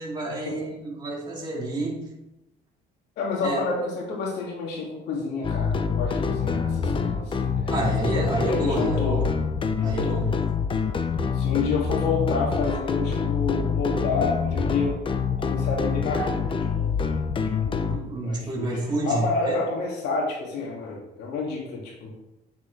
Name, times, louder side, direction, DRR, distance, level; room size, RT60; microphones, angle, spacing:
voice 1, 0.0-2.0 3.4-3.6 7.7-9.3 9.8-10.4 17.9-19.6, right 2 dB, 25° right, -4 dB, 2.8 m, -28 dB
voice 2, 3.2-7.8 8.2-9.2 9.8-10.2 11.3-15.0 15.4-17.1 17.6-17.8 18.2-18.8 19.0-22.1, left 4 dB, 85° left, -2 dB, 2.4 m, -29 dB
sound 1, 5.4-18.0, left 6 dB, 30° left, 0.7 m, -26 dB
9.4 x 7.0 x 3.3 m, 0.92 s
cardioid pair, 110°, 17 cm